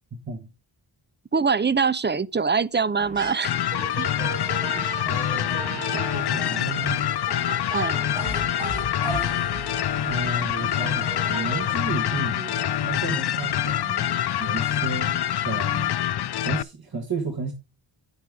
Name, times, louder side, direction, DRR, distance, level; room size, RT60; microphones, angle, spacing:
voice 1, 0.1-0.5 4.7-7.0 10.1-16.0 16.4-17.5, right 3 dB, 45° right, 1.7 m, -33 dB
voice 2, 1.3-3.5 4.0-4.1 7.7-8.0, right 5 dB, 25° right, 0.5 m, -23 dB
sound 1, 3.0-3.4 3.7-11.7, right 2 dB, 85° right, 5.2 m, -36 dB
sound 2, 3.4-16.6, left 11 dB, 55° left, 0.5 m, -26 dB
sound 3, 6.2-15.9, left 10 dB, 70° left, 1.2 m, -37 dB
9.4 x 8.9 x 3.6 m
cardioid pair, 45°, 49 cm